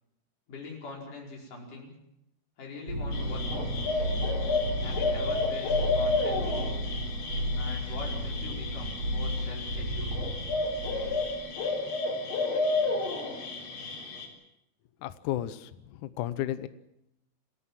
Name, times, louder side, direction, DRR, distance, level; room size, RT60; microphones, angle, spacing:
voice 1, 0.5-1.9 2.6-3.8 4.8-6.9 7.6-10.2, left 3 dB, 50° left, -1 dB, 6.5 m, -43 dB
sound 1, 2.9-11.4, equal, 40° right, 4.9 m, -33 dB
sound 2, 3.1-14.3, left 3 dB, 85° left, 6.0 m, -31 dB
voice 2, 15.0-16.7, left 13 dB, 70° left, 13 dB, 2.1 m, -33 dB
28.0 x 15.5 x 7.5 m, 0.82 s
omnidirectional pair, 4.5 m